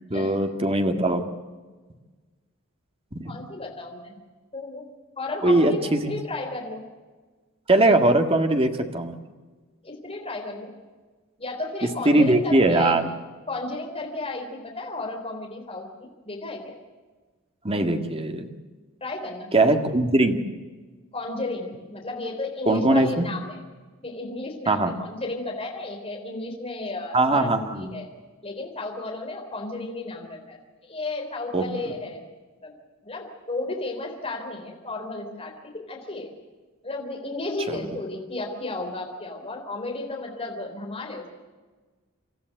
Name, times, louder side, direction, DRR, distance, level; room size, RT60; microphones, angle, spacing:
voice 1, 0.1-1.3 3.1-3.3 5.4-6.1 7.7-9.2 12.1-13.1 17.6-18.5 19.5-20.4 22.7-23.3 24.7-24.9 27.1-27.9 31.5-31.6 37.7-37.8, right 2 dB, 25° right, 5 dB, 1.9 m, -21 dB
voice 2, 3.2-4.2 4.5-4.9 5.2-6.9 9.8-10.7 11.4-13.0 13.5-16.7 19.0-19.5 21.1-23.6 24.0-28.1 28.4-30.6 30.8-32.2 32.6-32.7 33.0-36.3 36.8-41.3, left 2 dB, 25° left, 1 dB, 3.8 m, -33 dB
27.5 x 14.0 x 7.9 m, 1.3 s
head